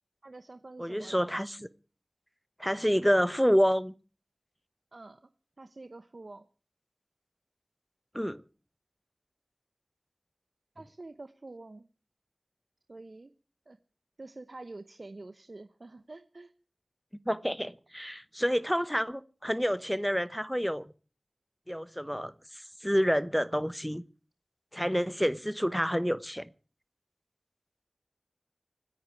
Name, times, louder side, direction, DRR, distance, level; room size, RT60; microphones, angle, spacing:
voice 1, 0.2-1.3 4.9-5.2 5.6-6.5 10.8-11.9 12.9-13.3 13.7-13.8 14.2-16.5, right 2 dB, 70° right, 0.8 m, -47 dB
voice 2, 0.8-1.7 2.6-3.9 8.1-8.4 17.3-20.8 21.7-24.0 24.7-26.5, equal, ahead, 0.9 m, -28 dB
26.0 x 10.0 x 4.6 m
wide cardioid pair, 50°, 0 cm